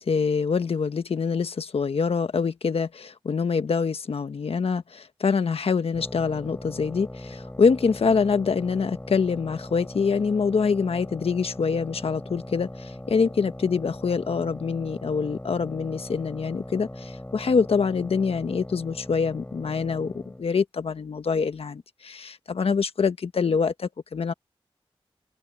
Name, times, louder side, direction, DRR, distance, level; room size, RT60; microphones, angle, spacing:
voice 1, 0.1-24.3, left 5 dB, 80° left, 1.2 m, -25 dB
sound 1, 5.9-20.4, left 1 dB, 15° left, 4.4 m, -40 dB
cardioid pair, 55°, 10 cm